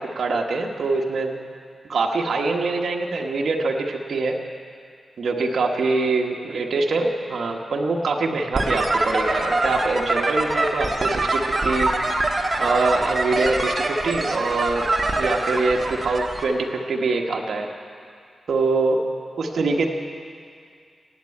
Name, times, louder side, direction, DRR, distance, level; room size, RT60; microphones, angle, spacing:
voice 1, 0.0-1.4 1.9-4.4 5.2-11.9 12.6-17.7 18.5-19.0 19.4-19.9, right 3 dB, 70° right, 1 dB, 1.2 m, -24 dB
sound 1, 8.5-16.4, right 2 dB, 25° right, 1.4 m, -24 dB
16.5 x 9.0 x 8.5 m, 2.3 s
wide cardioid pair, 115°, 0 cm